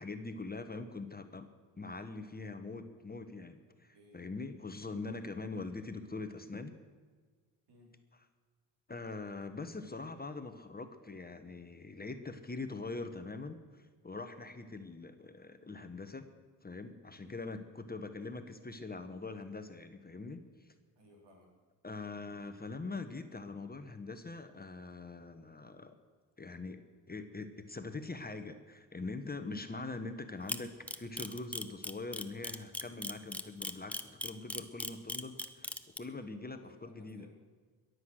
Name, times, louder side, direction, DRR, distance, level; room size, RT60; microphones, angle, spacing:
voice 1, 0.0-1.5 1.8-6.7 8.9-16.3 16.6-20.7 21.8-25.9 26.4-26.8 27.1-35.7 36.0-37.3, left 3 dB, 20° left, 8 dB, 1.3 m, -43 dB
voice 2, 3.9-4.2 7.7-7.9 17.2-17.5 21.0-21.5 29.4-29.6 36.3-37.4, equal, 70° right, -1 dB, 4.6 m, -61 dB
Camera, 30.5-36.0, left 1 dB, 5° left, 1.0 m, -37 dB
21.5 x 8.1 x 6.4 m, 1.5 s
supercardioid pair, 55°, 42 cm